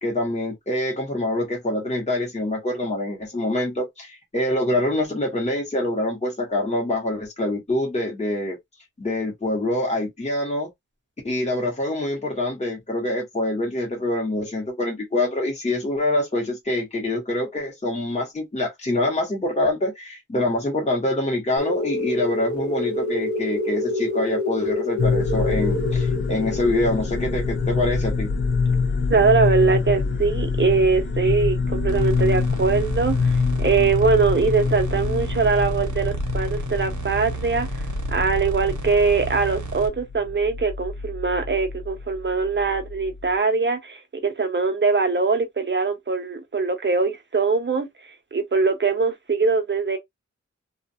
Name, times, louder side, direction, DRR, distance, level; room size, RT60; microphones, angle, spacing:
voice 1, 0.0-8.6 9.0-10.7 11.2-28.3, left 1 dB, 20° left, 1.0 m, -25 dB
sound 1, 21.6-29.9, left 2 dB, 70° left, 1.0 m, -28 dB
sound 2, 25.0-43.4, left 4 dB, 40° left, 0.4 m, -26 dB
voice 2, 29.1-37.7 38.1-47.9 48.3-50.0, right 4 dB, 40° right, 0.7 m, -22 dB
sound 3, 31.9-39.9, right 2 dB, 75° right, 0.8 m, -31 dB
2.3 x 2.2 x 2.6 m
wide cardioid pair, 80°, 30 cm